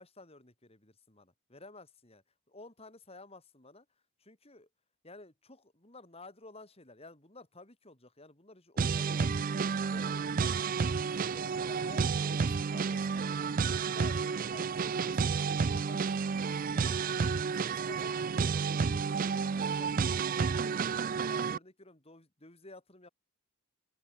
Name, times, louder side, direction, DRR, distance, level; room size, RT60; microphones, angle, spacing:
voice 1, 0.0-3.8 4.2-4.7 5.0-9.6 9.9-13.2 13.6-18.5 18.9-20.8 21.2-23.1, left 2 dB, 25° left, 3.3 m, -54 dB
sound 1, 8.8-21.6, right 5 dB, 40° right, 0.4 m, -31 dB
open air
head